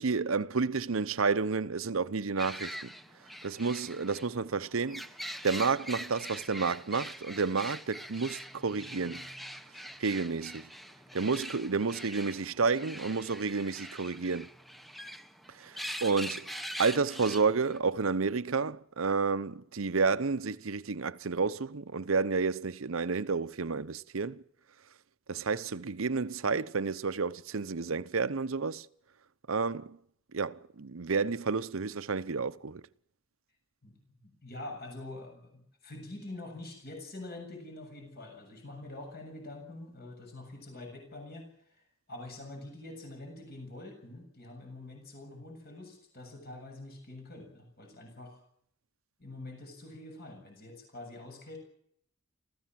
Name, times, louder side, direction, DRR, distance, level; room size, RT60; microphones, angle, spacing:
voice 1, 0.0-2.9 3.4-5.0 5.4-9.3 10.0-10.7 11.1-14.5 15.5-16.5 16.8-24.4 25.3-28.9 29.5-30.0 30.3-32.8, right 4 dB, 80° right, 0.8 m, -30 dB
sound 1, 2.4-17.8, equal, ahead, 0.9 m, -43 dB
voice 2, 33.8-48.4 49.2-51.6, left 2 dB, 50° left, 7.2 m, -45 dB
27.5 x 15.5 x 7.6 m
head